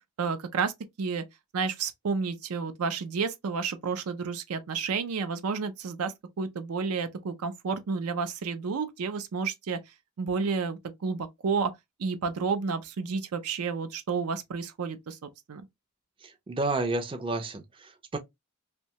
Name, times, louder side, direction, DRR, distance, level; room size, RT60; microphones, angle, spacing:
voice 1, 0.2-0.7 1.0-1.2 1.5-9.8 10.2-11.7 12.0-15.7, right 5 dB, 80° right, 0.5 m, -31 dB
voice 2, 16.2-18.2, right 2 dB, 25° right, 0.4 m, -31 dB
2.6 x 2.1 x 2.8 m
head